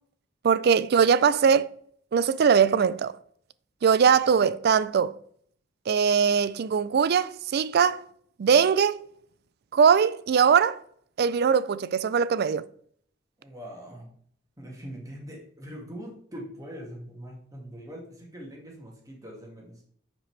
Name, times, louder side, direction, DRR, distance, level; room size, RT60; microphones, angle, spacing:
voice 1, 0.4-1.7 2.1-3.2 3.8-5.2 5.9-8.0 8.4-9.1 9.7-10.8 11.2-12.7, right 6 dB, 60° right, 0.4 m, -21 dB
voice 2, 13.4-14.2 14.6-19.8, equal, 20° right, 1.9 m, -42 dB
9.9 x 5.2 x 3.3 m
head